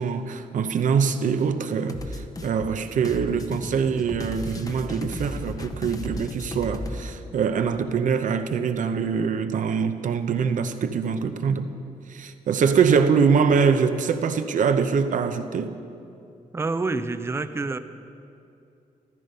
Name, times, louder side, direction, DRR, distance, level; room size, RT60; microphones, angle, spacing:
voice 1, 0.0-11.7 12.1-15.7, right 6 dB, 65° right, 9 dB, 0.8 m, -23 dB
sound 1, 1.9-7.0, left 1 dB, 25° left, 0.8 m, -35 dB
voice 2, 16.5-17.8, right 3 dB, 20° right, 11 dB, 0.5 m, -27 dB
14.0 x 14.0 x 5.5 m, 2.6 s
wide cardioid pair, 150°, 14 cm